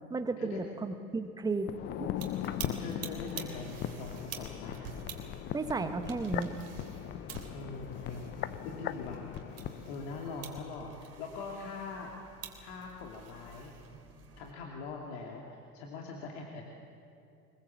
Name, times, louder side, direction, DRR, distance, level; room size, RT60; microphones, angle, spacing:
voice 1, 0.1-2.1 5.5-6.5, right 3 dB, 10° right, 10 dB, 1.1 m, -34 dB
sound 1, 1.6-10.7 11.0-11.1, left 11 dB, 25° left, 0.6 m, -39 dB
sound 2, 2.2-14.5, right 7 dB, 30° right, 3.1 m, -49 dB
voice 2, 2.3-4.8 7.5-8.2 8.6-9.2 9.9-12.2 12.6-13.8 14.4-16.6, left 4 dB, 45° left, 0 dB, 2.6 m, -42 dB
23.5 x 21.5 x 7.5 m, 2.6 s
figure-of-eight pair, 90°, 46 cm